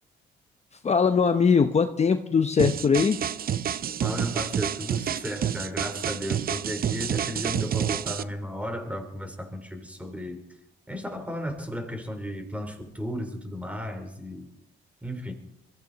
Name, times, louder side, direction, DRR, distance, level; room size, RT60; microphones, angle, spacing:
voice 1, 0.8-3.2, left 5 dB, 35° left, 8 dB, 0.8 m, -21 dB
sound 1, 2.6-8.2, right 9 dB, 50° right, 0.6 m, -29 dB
voice 2, 4.0-10.4 10.9-14.5 15.0-15.3, equal, 5° right, 6 dB, 3.5 m, -34 dB
22.0 x 15.0 x 4.1 m, 0.82 s
cardioid pair, 90°, 20 cm